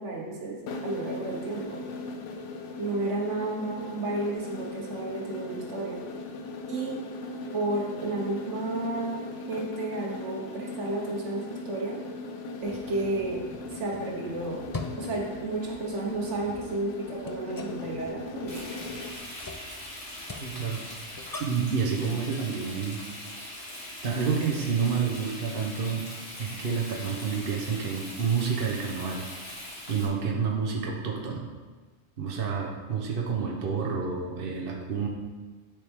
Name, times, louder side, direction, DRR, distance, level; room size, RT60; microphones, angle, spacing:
voice 1, 0.0-1.8 2.8-6.0 6.7-7.0 7.5-9.2 9.5-12.0 12.6-13.4 13.7-14.6 15.0-18.6, right 2 dB, 80° right, -1 dB, 1.5 m, -32 dB
sound 1, 0.7-19.2, left 3 dB, 80° left, 1.0 m, -39 dB
sound 2, 12.6-21.7, left 3 dB, 35° left, 0.3 m, -44 dB
Frying (food), 18.5-30.1, left 1 dB, 60° left, 1.9 m, -41 dB
voice 2, 20.4-20.8 21.4-23.0 24.0-26.1 26.4-29.2 29.9-31.4 32.2-35.1, right 6 dB, 55° right, 0 dB, 1.1 m, -29 dB
9.9 x 5.0 x 3.6 m, 1.3 s
omnidirectional pair, 1.2 m